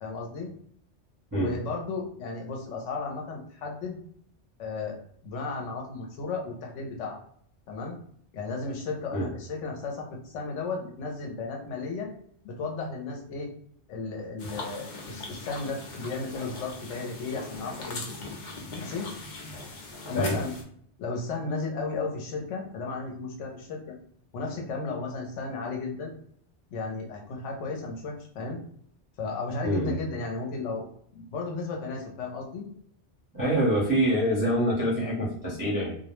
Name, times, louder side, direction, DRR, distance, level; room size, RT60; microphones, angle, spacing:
voice 1, 0.0-0.5 1.4-4.0 4.6-5.0 5.2-7.2 7.7-8.0 8.3-12.1 12.4-13.5 13.9-18.3 18.7-19.1 20.1-20.5 21.0-23.8 24.3-26.1 26.7-28.6 29.2-30.9 31.1-32.7, left 3 dB, 90° left, 1 dB, 1.0 m, -34 dB
sound 1, 14.4-20.6, left 2 dB, 55° left, 0.5 m, -40 dB
voice 2, 29.6-30.0 33.3-36.0, equal, 20° right, -10 dB, 0.8 m, -25 dB
2.3 x 2.0 x 3.0 m, 0.62 s
omnidirectional pair, 1.2 m